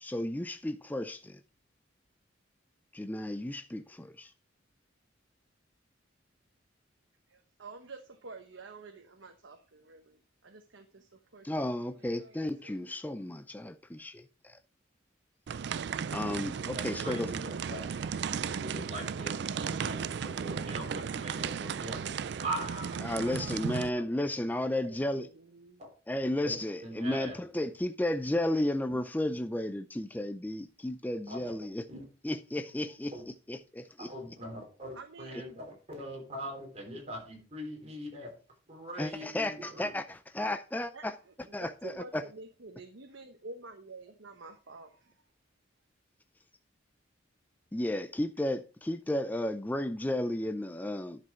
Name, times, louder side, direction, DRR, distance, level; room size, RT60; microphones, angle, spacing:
voice 1, 0.0-1.4 2.9-4.3 11.4-14.6 16.1-17.3 23.0-25.3 26.1-31.9 32.2-34.1 39.0-41.2 41.5-42.2 47.7-51.2, left 1 dB, 10° left, 0.4 m, -33 dB
voice 2, 7.3-12.8 24.8-25.8 34.9-35.4 40.9-45.2, right 3 dB, 80° right, 1.0 m, -49 dB
sound 1, 15.5-23.9, right 6 dB, 60° right, 0.4 m, -35 dB
voice 3, 16.7-17.9 18.6-24.3 25.8-25.9 26.4-26.6 26.8-27.4 31.3-32.0 33.1-33.2 34.0-38.3 38.7-39.9, right 1 dB, 35° right, 3.8 m, -42 dB
10.5 x 6.0 x 4.4 m
head